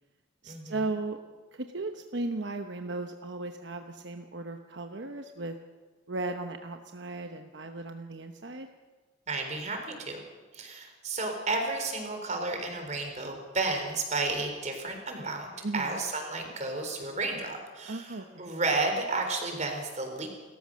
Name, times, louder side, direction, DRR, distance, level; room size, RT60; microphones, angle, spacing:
voice 1, 0.4-1.2 1.5-5.6 6.1-8.7 15.6-16.0 17.8-18.5, right 2 dB, 70° right, 6 dB, 1.0 m, -36 dB
voice 2, 9.3-10.2 10.5-20.3, right 3 dB, 40° right, 4 dB, 3.8 m, -32 dB
29.0 x 14.0 x 6.4 m, 1.4 s
head